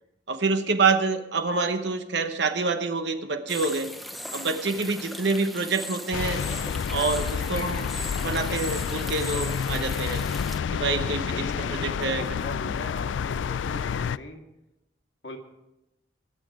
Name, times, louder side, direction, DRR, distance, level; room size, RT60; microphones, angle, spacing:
voice 1, 0.3-3.9 4.3-6.4 6.9-7.9 8.2-10.2 10.7-12.2, right 3 dB, 65° right, 7 dB, 0.9 m, -27 dB
sound 1, 3.5-10.6, equal, ahead, 0.7 m, -38 dB
sound 2, 6.1-14.2, left 7 dB, 85° left, 0.3 m, -29 dB
voice 2, 11.3-14.4 15.2-15.4, left 1 dB, 65° left, 3 dB, 1.9 m, -41 dB
22.0 x 7.4 x 4.9 m, 0.92 s
head